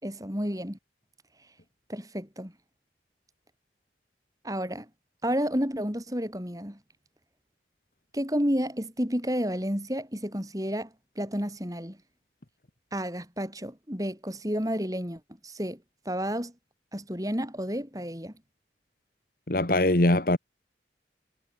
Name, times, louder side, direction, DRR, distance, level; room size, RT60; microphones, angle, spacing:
voice 1, 0.0-0.8 1.9-2.5 4.4-4.9 5.2-6.8 8.1-12.0 12.9-15.8 16.1-16.5 16.9-18.3, equal, 20° right, 7.5 m, -31 dB
voice 2, 19.5-20.4, left 1 dB, 50° left, 1.7 m, -22 dB
head